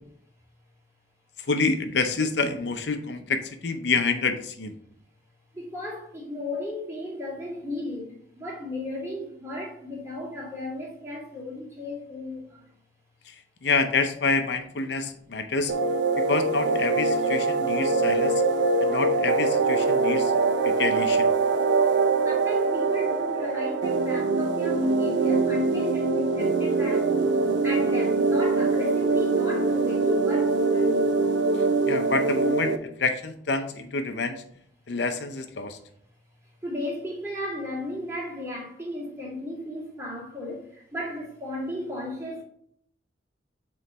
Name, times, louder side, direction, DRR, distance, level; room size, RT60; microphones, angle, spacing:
voice 1, 1.5-4.7 13.3-13.4 13.6-15.7 16.2-18.4 18.8-20.3 20.6-21.3 31.9-34.4 34.9-35.8, left 4 dB, 70° left, 0.6 m, -27 dB
voice 2, 5.5-12.6 22.2-27.1 27.6-31.2 36.6-42.4, left 1 dB, 15° right, 2.2 m, -35 dB
sound 1, 15.7-32.8, right 3 dB, 85° right, 0.6 m, -23 dB
7.7 x 3.2 x 4.1 m
head